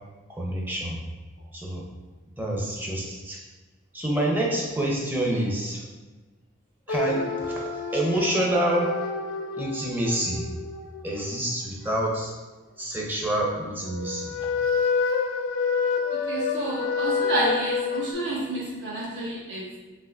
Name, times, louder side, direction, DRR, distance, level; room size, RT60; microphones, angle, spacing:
voice 1, 0.3-1.0 1.5-1.8 2.4-3.4 3.9-5.9 6.9-9.0 9.6-10.4 11.0-12.3 12.8-14.5, right 1 dB, 10° right, -2 dB, 0.7 m, -27 dB
sound 1, 6.9-11.8 13.8-18.1, left 4 dB, 90° left, 0.5 m, -28 dB
voice 2, 16.3-19.8, right 1 dB, 70° right, -6 dB, 1.2 m, -29 dB
5.5 x 2.9 x 2.5 m, 1.2 s
head